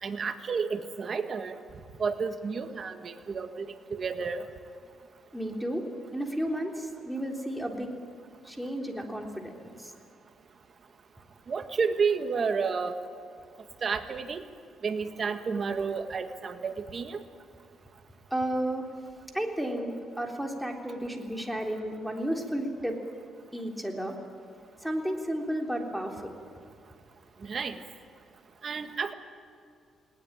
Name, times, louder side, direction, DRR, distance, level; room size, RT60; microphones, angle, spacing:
voice 1, 0.0-1.6 2.0-3.6 3.9-4.5 11.5-13.0 13.8-14.4 14.8-17.2 27.4-27.8 28.6-29.1, right 5 dB, 45° right, 8 dB, 1.7 m, -31 dB
voice 2, 5.3-5.8 6.1-7.9 8.4-9.9 18.3-18.9 19.3-23.0 23.5-24.2 24.8-26.4, right 1 dB, ahead, 1 dB, 3.5 m, -32 dB
20.0 x 19.0 x 8.9 m, 2.4 s
cardioid pair, 90°, 0 cm